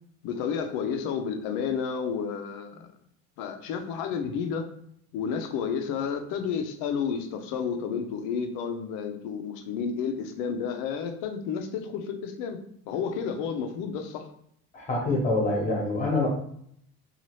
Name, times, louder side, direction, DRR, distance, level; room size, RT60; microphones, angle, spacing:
voice 1, 0.2-2.9 3.4-4.7 5.1-12.6 12.9-14.3, left 6 dB, 75° left, 6 dB, 0.5 m, -31 dB
voice 2, 14.7-16.3, left 2 dB, 25° left, -3 dB, 1.0 m, -25 dB
2.7 x 2.4 x 3.0 m, 0.67 s
cardioid pair, 175°, 31 cm